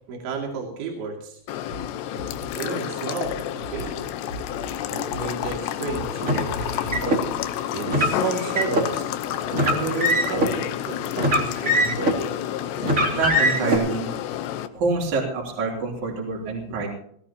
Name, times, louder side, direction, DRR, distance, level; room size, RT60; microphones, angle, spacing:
voice 1, 0.1-1.4 2.1-2.2 2.6-3.4 3.7-4.0 4.9-6.5 7.7-9.1 9.6-11.8, right 5 dB, 75° right, 0 dB, 4.8 m, -32 dB
sound 1, 1.5-14.7, left 11 dB, 80° left, 3.0 m, -30 dB
Car, 6.2-7.2 7.9-8.9 9.5-10.5 11.2-12.2 12.8-13.8, equal, 20° right, 2.6 m, -22 dB
voice 2, 13.1-14.1 14.7-16.9, right 3 dB, 45° right, -3 dB, 4.3 m, -26 dB
20.0 x 17.5 x 2.9 m, 0.67 s
omnidirectional pair, 5.3 m